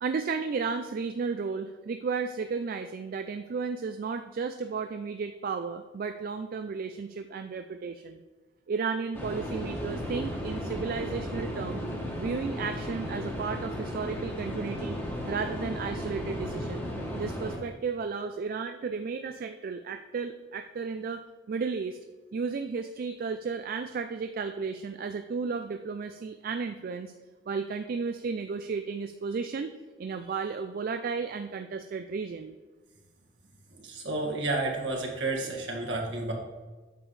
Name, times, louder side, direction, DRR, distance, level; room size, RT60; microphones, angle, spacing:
voice 1, 0.0-8.2 8.7-11.8 12.1-15.0 15.3-16.9 17.2-22.0 22.3-27.1 27.5-32.5, right 5 dB, 50° right, 8 dB, 0.3 m, -33 dB
sound 1, 9.1-17.6, equal, 10° left, 1.5 m, -35 dB
voice 2, 33.7-36.3, right 2 dB, 65° right, -1 dB, 1.7 m, -31 dB
8.8 x 6.9 x 3.2 m, 1.3 s
head